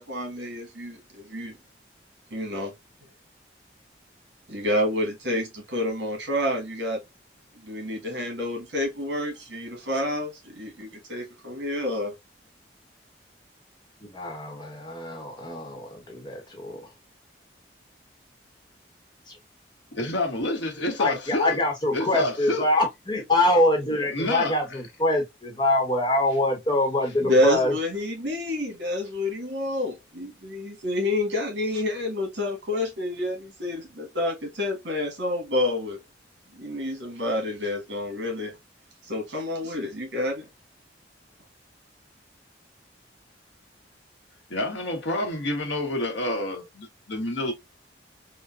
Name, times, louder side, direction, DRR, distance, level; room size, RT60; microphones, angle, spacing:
voice 1, 0.0-1.6 2.3-2.7 4.5-7.0 7.6-12.1 27.2-36.0 36.5-38.5 39.0-40.4, left 1 dB, 75° right, 1.5 m, -28 dB
voice 2, 14.0-16.8 19.3-19.4 21.0-27.7, left 1 dB, 25° left, 1.0 m, -24 dB
voice 3, 19.9-21.6 21.9-22.7 24.1-24.6 44.5-47.5, left 1 dB, 75° left, 1.1 m, -28 dB
3.7 x 2.1 x 2.4 m
head